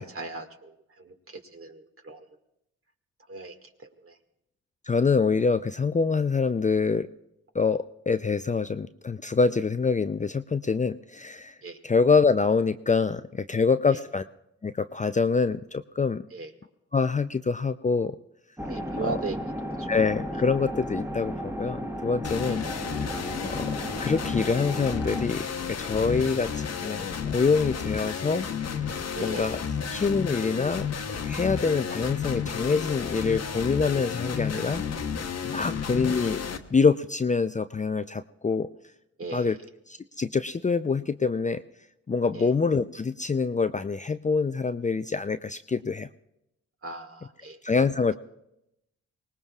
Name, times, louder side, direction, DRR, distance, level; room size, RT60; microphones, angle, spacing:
voice 1, 0.0-2.3 3.3-4.2 11.6-11.8 13.9-14.0 16.3-16.5 18.7-19.4 19.8-19.9 22.5-22.6 23.3-23.4 26.2-26.3 29.2-29.5 35.6-35.7 39.2-39.6 42.3-42.5 46.8-47.6, right 3 dB, 45° right, 4 dB, 2.1 m, -38 dB
voice 2, 4.9-7.1 7.5-11.5 11.8-14.2 14.6-16.2 16.9-18.2 19.0-19.1 19.9-22.6 23.5-28.5 29.2-29.6 29.9-34.8 35.4-36.4 36.7-38.7 39.3-39.6 39.9-41.6 42.1-46.1 47.6-48.1, left 4 dB, 25° left, 10 dB, 0.5 m, -25 dB
sound 1, 18.6-25.3, equal, 10° right, 1.4 m, -34 dB
sound 2, 22.2-36.6, left 6 dB, 55° left, 1.2 m, -32 dB
24.5 x 18.5 x 2.4 m, 0.84 s
hypercardioid pair, 40°, 32 cm